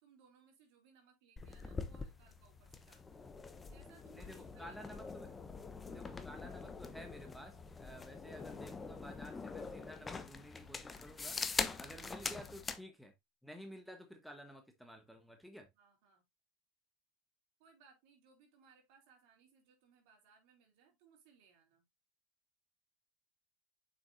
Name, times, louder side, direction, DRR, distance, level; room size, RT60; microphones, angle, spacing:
voice 1, 0.0-3.3 3.7-5.0 11.7-12.1 15.7-16.2 17.6-21.8, right 6 dB, 60° right, 4.0 m, -67 dB
sound 1, 1.4-12.8, left 4 dB, 15° left, 0.9 m, -44 dB
voice 2, 4.1-5.3 5.8-11.4 11.8-13.1 13.4-15.7, equal, ahead, 1.2 m, -53 dB
7.1 x 6.0 x 2.6 m
hypercardioid pair, 105°, 0 cm